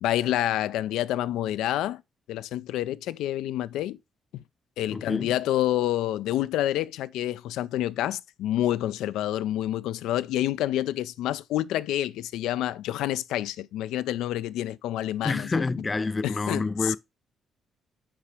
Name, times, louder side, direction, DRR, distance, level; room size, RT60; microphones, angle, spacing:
voice 1, 0.0-2.0 2.3-4.0 4.3-4.4 4.8-15.6 16.2-17.0, left 13 dB, 90° left, 0.4 m, -28 dB
voice 2, 4.9-5.3 15.2-17.0, left 3 dB, 25° left, 0.4 m, -28 dB
5.6 x 5.0 x 4.8 m
cardioid pair, 90°, 0 cm